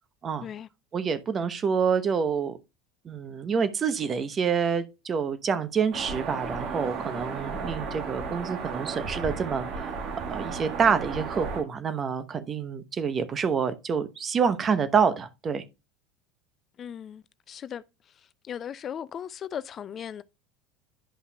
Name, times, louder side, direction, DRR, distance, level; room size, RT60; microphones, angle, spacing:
voice 1, 0.9-2.6 3.0-15.6, right 6 dB, 35° right, 0.9 m, -27 dB
sound 1, 5.9-11.6, right 5 dB, 50° right, 1.6 m, -34 dB
voice 2, 16.8-17.8 18.4-20.2, left 9 dB, 40° left, 0.4 m, -37 dB
11.0 x 5.6 x 2.3 m
hypercardioid pair, 75°, 0 cm